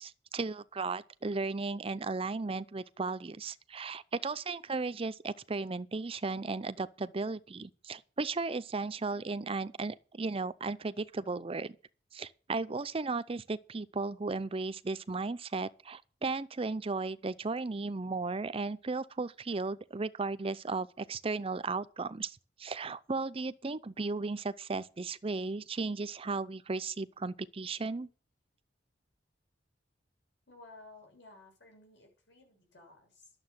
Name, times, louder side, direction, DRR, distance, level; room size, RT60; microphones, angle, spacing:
voice 1, 0.0-11.8 12.1-28.1, right 3 dB, 30° right, 0.6 m, -35 dB
voice 2, 30.5-33.3, left 2 dB, 80° left, 6.9 m, -55 dB
11.5 x 7.2 x 7.5 m
head